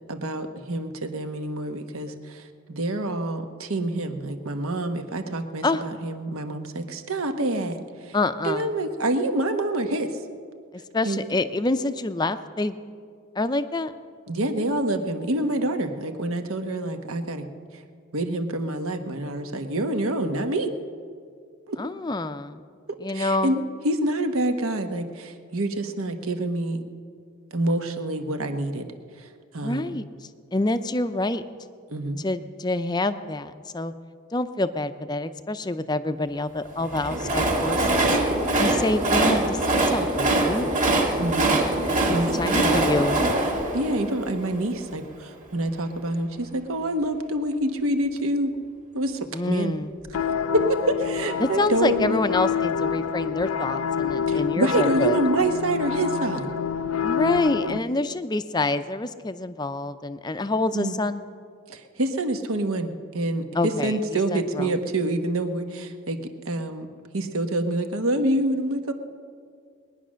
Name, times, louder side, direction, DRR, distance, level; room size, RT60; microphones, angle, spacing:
voice 1, 0.1-8.2 8.4-10.2 11.0-11.2 14.3-17.5 17.7-17.8 18.1-20.7 21.7-21.8 23.1-26.8 27.5-28.9 29.2-30.0 31.9-32.2 39.2-39.4 41.2-41.5 42.1-42.7 43.7-48.5 48.9-49.8 50.5-52.2 54.3-56.5 57.6-57.7 60.7-60.9 61.7-66.2 66.4-66.9 67.1-68.9, right 1 dB, 75° right, 7 dB, 1.2 m, -27 dB
voice 2, 8.1-8.7 10.9-12.8 13.4-13.9 21.8-22.6 23.0-23.6 29.6-31.4 32.2-33.9 34.3-38.0 38.6-40.7 41.5-42.0 42.3-43.2 49.3-49.9 51.4-55.2 57.0-61.2 63.5-64.7, left 2 dB, 20° left, 11 dB, 0.5 m, -27 dB
Train, 36.8-44.9, right 2 dB, 35° right, 2.1 m, -23 dB
sound 1, 50.1-57.8, left 7 dB, 75° left, 0.4 m, -27 dB
20.5 x 10.0 x 6.3 m, 2.1 s
head